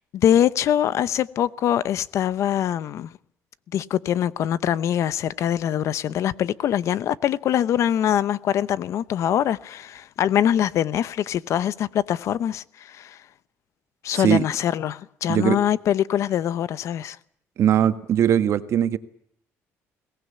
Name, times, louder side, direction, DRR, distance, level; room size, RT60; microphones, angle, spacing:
voice 1, 0.1-3.1 3.7-13.2 14.0-17.2, left 10 dB, 65° left, 0.8 m, -23 dB
voice 2, 15.3-15.6 17.6-19.0, right 10 dB, 60° right, 1.6 m, -20 dB
22.0 x 18.5 x 8.3 m
cardioid pair, 110°, 5 cm